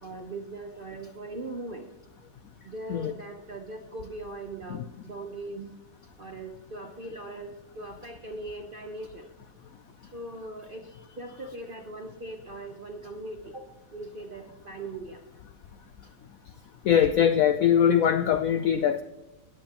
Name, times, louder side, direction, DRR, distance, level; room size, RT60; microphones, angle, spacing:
voice 1, 0.0-1.9 2.6-5.8 6.2-9.3 10.1-15.2, right 2 dB, 50° right, 3 dB, 0.6 m, -40 dB
voice 2, 16.8-19.0, left 9 dB, 75° left, 10 dB, 0.8 m, -22 dB
17.0 x 9.0 x 2.9 m, 1.0 s
omnidirectional pair, 2.0 m